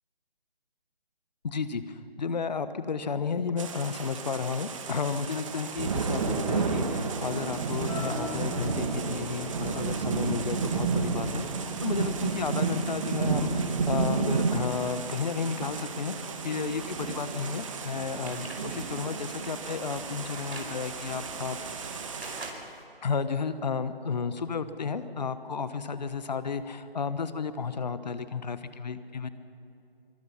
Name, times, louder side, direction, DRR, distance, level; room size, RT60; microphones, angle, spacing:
voice 1, 1.4-11.4 11.8-16.2 16.4-22.0 23.0-29.3, left 5 dB, 45° left, 12 dB, 1.1 m, -32 dB
sound 1, 3.6-22.5, right 5 dB, 30° right, 1.8 m, -32 dB
Acoustic guitar, 7.9-12.3 12.7-13.1, left 3 dB, 5° left, 2.4 m, -44 dB
sound 2, 17.1-18.6 19.0-20.8 21.4-22.8, right 2 dB, 85° right, 5.2 m, -45 dB
24.0 x 23.5 x 5.6 m, 2.7 s
figure-of-eight pair, 160°, 30 cm